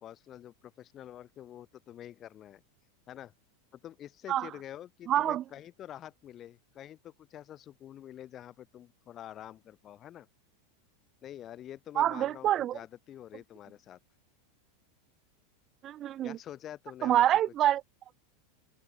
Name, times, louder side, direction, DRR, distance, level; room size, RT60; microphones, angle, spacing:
voice 1, 0.0-2.6 3.1-3.3 3.7-10.3 11.2-14.0 16.2-17.2, left 11 dB, 25° left, 1.3 m, -47 dB
voice 2, 5.1-5.4 12.0-12.8 15.8-16.4 17.0-17.8, right 12 dB, 25° right, 0.4 m, -26 dB
open air
supercardioid pair, 165°, 0 cm